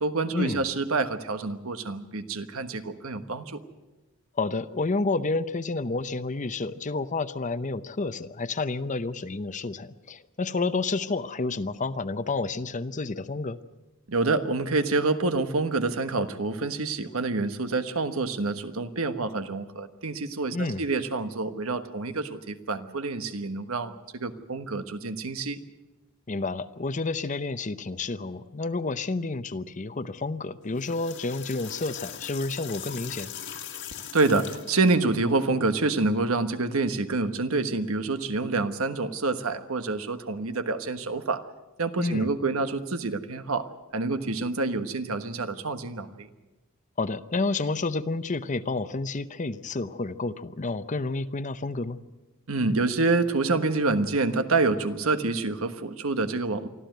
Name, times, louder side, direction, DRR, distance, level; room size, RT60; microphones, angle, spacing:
voice 1, 0.0-3.6 14.1-25.6 34.1-41.4 41.8-46.3 52.5-56.7, right 3 dB, 75° right, 9 dB, 1.3 m, -27 dB
voice 2, 4.4-13.6 20.5-20.8 26.3-33.3 42.0-42.3 47.0-52.0, left 3 dB, 35° left, 13 dB, 0.7 m, -30 dB
sound 1, 30.6-34.9, left 9 dB, 55° left, 1.9 m, -40 dB
24.5 x 14.0 x 9.2 m, 1.1 s
head